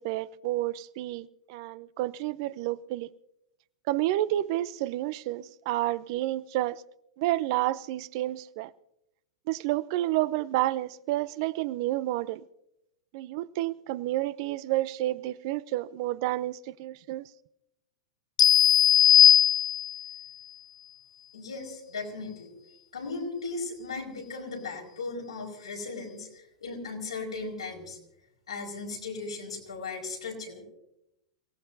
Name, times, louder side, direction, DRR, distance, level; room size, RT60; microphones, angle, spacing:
voice 1, 0.0-3.1 3.9-6.8 7.2-8.7 9.5-12.4 13.1-17.3, right 15 dB, 50° right, 0.6 m, -30 dB
sound 1, 18.4-20.1, left 11 dB, 70° left, 0.9 m, -19 dB
voice 2, 21.3-22.5 22.9-28.0 28.5-30.6, left 3 dB, 85° left, 4.8 m, -37 dB
29.0 x 17.0 x 2.7 m
hypercardioid pair, 105°, 3 cm